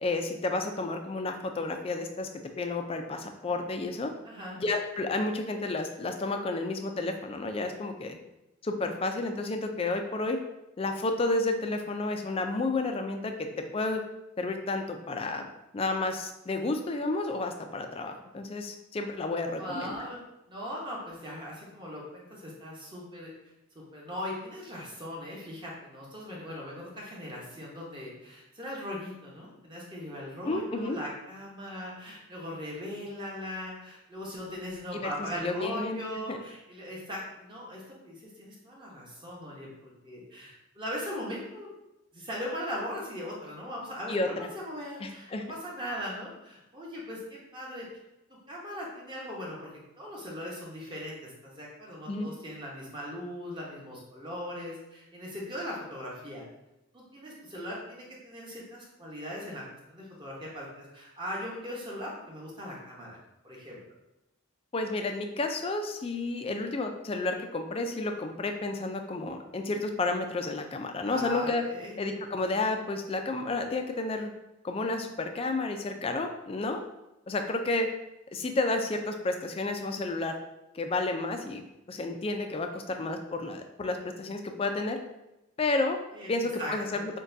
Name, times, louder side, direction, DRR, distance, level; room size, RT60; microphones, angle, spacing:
voice 1, 0.0-2.3 2.6-4.1 4.6-8.2 8.6-10.4 10.8-13.5 13.7-14.0 14.4-15.5 15.7-20.0 30.5-31.0 34.9-36.0 36.3-36.4 44.1-44.5 45.0-45.4 52.1-52.3 64.7-71.6 72.0-74.3 74.6-76.8 77.3-77.9 78.3-80.4 80.7-81.6 81.9-85.0 85.6-86.0 86.3-87.2, left 2 dB, 25° left, 5 dB, 0.3 m, -31 dB
voice 2, 4.2-4.6 19.5-20.2 20.5-23.3 23.7-41.7 42.1-47.9 48.5-56.4 56.9-59.6 59.9-63.2 63.4-63.8 71.0-72.0 86.1-86.3 86.6-87.1, equal, 20° right, -4 dB, 0.8 m, -39 dB
6.2 x 2.2 x 2.6 m, 0.93 s
head